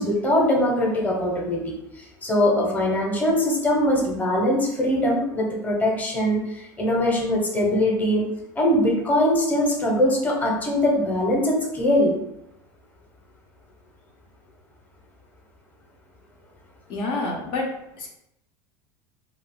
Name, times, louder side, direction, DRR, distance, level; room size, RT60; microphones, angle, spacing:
voice 1, 0.0-1.7 2.2-8.2 8.6-12.1, left 1 dB, 15° left, -1 dB, 0.9 m, -22 dB
voice 2, 16.9-18.1, left 2 dB, 55° left, -1 dB, 0.7 m, -28 dB
2.4 x 2.4 x 3.7 m, 0.82 s
supercardioid pair, 105°, 11 cm